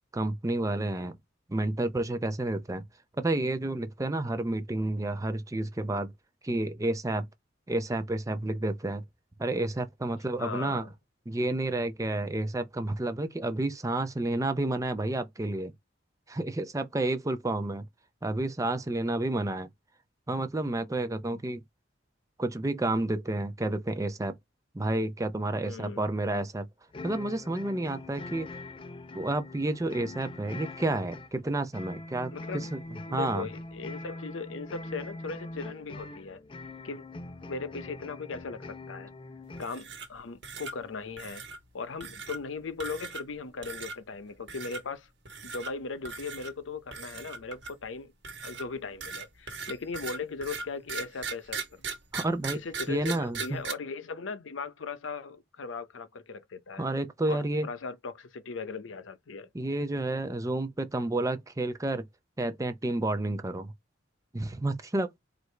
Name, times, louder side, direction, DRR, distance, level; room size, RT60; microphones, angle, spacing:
voice 1, 0.1-1.2 1.5-2.8 3.2-6.1 6.4-7.3 7.7-9.0 9.4-10.9 11.3-15.7 16.3-17.9 18.2-19.7 20.3-21.6 22.4-24.3 24.7-26.7 27.0-28.5 29.1-32.8 33.1-33.5 52.1-52.6 52.9-53.6 56.8-57.7 59.5-62.0 62.4-63.7 64.3-65.1, right 2 dB, 15° right, 0.5 m, -30 dB
voice 2, 10.4-10.9 21.3-21.4 25.7-26.1 32.3-32.7 33.1-36.4 36.8-37.0 37.5-39.1 39.6-41.4 41.7-45.1 45.4-48.1 48.4-51.8 52.5-56.9 57.3-59.5, left 4 dB, 90° left, 0.7 m, -38 dB
sound 1, 26.9-39.7, left 2 dB, 30° left, 0.5 m, -43 dB
sound 2, 39.6-40.2 40.4-40.7 41.2-41.6 42.0-42.4 42.8-43.3 43.6-44.0 44.5-44.8 45.2-45.7 46.0-46.5 46.9-47.8 48.2-53.7, right 5 dB, 65° right, 1.2 m, -38 dB
4.7 x 2.5 x 3.2 m
head